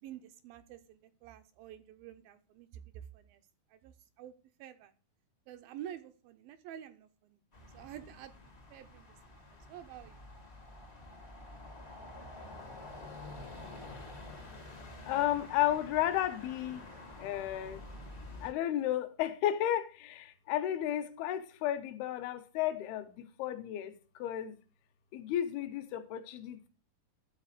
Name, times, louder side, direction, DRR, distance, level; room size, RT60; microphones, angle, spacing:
voice 1, 0.0-3.4 3.7-4.3 4.6-4.9 5.5-7.4 7.7-8.3 8.7-9.4 9.7-10.2, right 10 dB, 80° right, 2.3 m, -49 dB
sound 1, 7.5-18.5, left 2 dB, 60° left, 0.6 m, -49 dB
voice 2, 15.0-16.8 17.2-17.8 18.4-24.6 25.1-26.7, left 12 dB, 85° left, 2.8 m, -33 dB
12.0 x 4.1 x 6.5 m
omnidirectional pair, 4.4 m